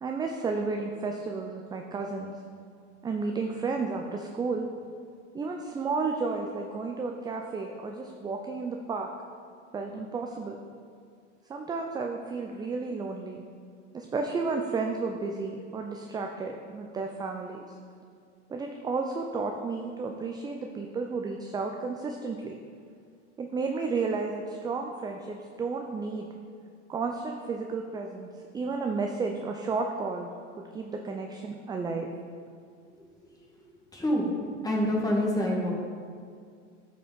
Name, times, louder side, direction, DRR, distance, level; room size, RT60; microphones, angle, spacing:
voice 1, 0.0-2.4 3.0-4.7 5.3-9.1 9.7-10.6 11.5-13.4 13.9-17.8 18.5-22.6 23.4-26.3 26.9-32.1, right 4 dB, 10° right, 3 dB, 0.4 m, -32 dB
voice 2, 33.9-34.3 34.6-35.7, left 1 dB, 10° left, -2 dB, 1.9 m, -26 dB
11.5 x 5.2 x 3.9 m, 2.2 s
hypercardioid pair, 95°, 36 cm